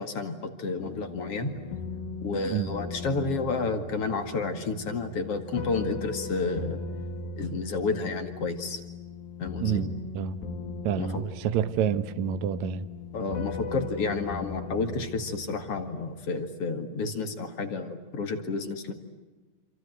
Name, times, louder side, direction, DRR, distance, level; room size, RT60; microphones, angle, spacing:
voice 1, 0.0-1.5 2.2-6.8 7.4-8.8 9.4-9.9 11.0-11.1 13.1-18.9, left 3 dB, 45° left, 2.4 m, -31 dB
sound 1, 0.8-16.2, left 3 dB, 85° left, 5.2 m, -39 dB
voice 2, 9.6-10.4 10.8-12.9, right 8 dB, 90° right, 1.6 m, -28 dB
27.5 x 27.5 x 7.9 m
omnidirectional pair, 4.7 m